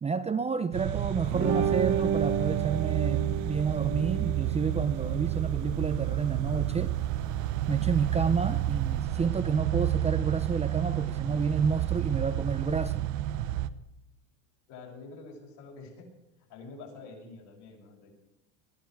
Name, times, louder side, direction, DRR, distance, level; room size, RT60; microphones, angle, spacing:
voice 1, 0.0-7.0 7.7-13.1, right 5 dB, 15° right, 0.5 m, -30 dB
sound 1, 0.7-13.7, right 13 dB, 75° right, 1.1 m, -30 dB
sound 2, 1.3-9.0, right 7 dB, 35° right, 1.7 m, -33 dB
voice 2, 14.7-16.1 16.4-18.1, left 3 dB, 60° left, 6.7 m, -47 dB
22.0 x 14.0 x 4.7 m
supercardioid pair, 130°, 48 cm